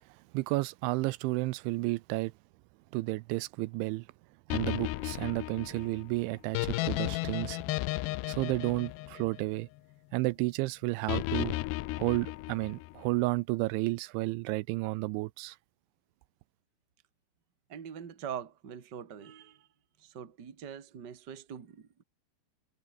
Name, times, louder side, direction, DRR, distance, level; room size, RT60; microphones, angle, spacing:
voice 1, 0.3-2.3 2.9-4.1 4.5-7.6 8.3-9.7 10.1-11.6 12.0-15.6, right 22 dB, 85° right, 3.0 m, -32 dB
sound 1, 4.5-9.8 11.1-13.0, left 20 dB, 85° left, 2.5 m, -34 dB
voice 2, 17.7-19.7 20.0-22.0, right 8 dB, 35° right, 1.7 m, -43 dB
omnidirectional pair, 5.4 m